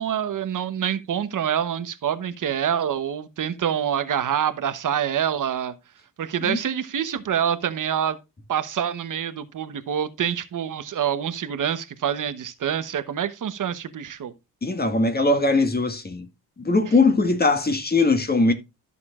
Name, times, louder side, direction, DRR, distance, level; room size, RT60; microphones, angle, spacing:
voice 1, 0.0-5.7 6.2-8.2 8.5-14.3, right 9 dB, 55° right, 1.0 m, -26 dB
voice 2, 14.6-16.3 16.6-18.5, left 3 dB, 25° left, 1.8 m, -20 dB
13.0 x 6.8 x 2.4 m
cardioid pair, 105°, 36 cm